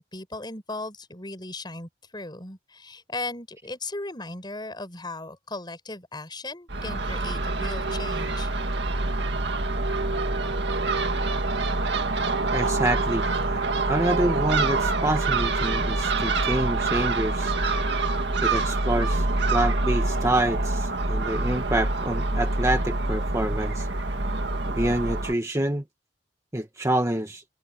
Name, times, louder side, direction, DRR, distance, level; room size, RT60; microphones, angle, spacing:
voice 1, 0.0-8.5, left 2 dB, 25° left, 6.3 m, -37 dB
Crow / Gull seagull, 6.7-25.3, right 2 dB, 70° right, 2.1 m, -26 dB
voice 2, 12.5-13.3 13.9-17.5 18.4-19.2 19.5-23.9 24.7-25.8 26.5-27.4, right 1 dB, 15° right, 1.4 m, -27 dB
head